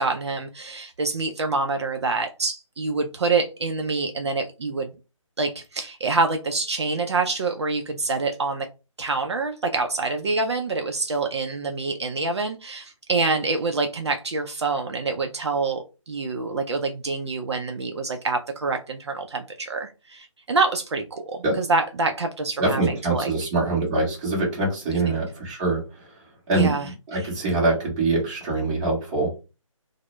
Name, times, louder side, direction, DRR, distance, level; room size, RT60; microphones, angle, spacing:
voice 1, 0.0-4.9 5.4-8.7 9.0-23.5 24.9-25.2 26.5-27.3, right 3 dB, 55° right, 0.4 m, -26 dB
voice 2, 22.6-25.8 26.5-26.7 27.1-29.3, right 2 dB, 15° right, 0.7 m, -24 dB
2.1 x 2.0 x 2.9 m
figure-of-eight pair, 155°, 17 cm